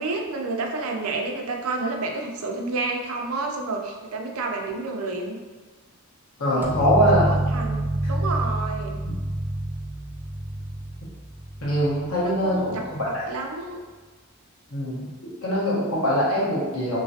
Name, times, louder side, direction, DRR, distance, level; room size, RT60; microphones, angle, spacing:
voice 1, 0.0-5.4 6.4-6.7 7.2-9.0 12.2-13.8, right 3 dB, 80° right, 2 dB, 0.5 m, -30 dB
voice 2, 6.4-7.2 9.1-9.2 11.6-13.2 14.7-15.1 15.4-17.0, equal, 85° left, -7 dB, 1.2 m, -23 dB
sound 1, 6.6-12.2, right 1 dB, 10° right, 0.4 m, -27 dB
3.1 x 3.0 x 2.7 m, 1.4 s
head